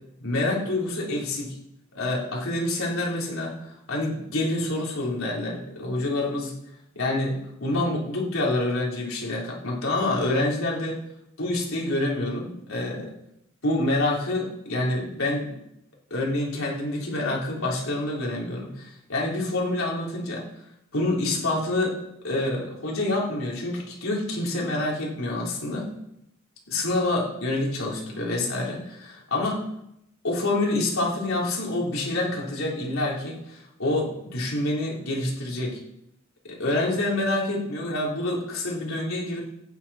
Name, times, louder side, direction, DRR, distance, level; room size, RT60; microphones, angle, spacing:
voice 1, 0.2-1.5 1.9-6.5 6.9-11.0 11.4-13.1 13.6-15.5 16.1-20.5 20.9-22.0 22.2-25.9 26.7-29.6 30.2-35.8 36.4-39.4, left 2 dB, 85° left, -3 dB, 3.8 m, -27 dB
14.5 x 9.8 x 4.3 m, 0.79 s
head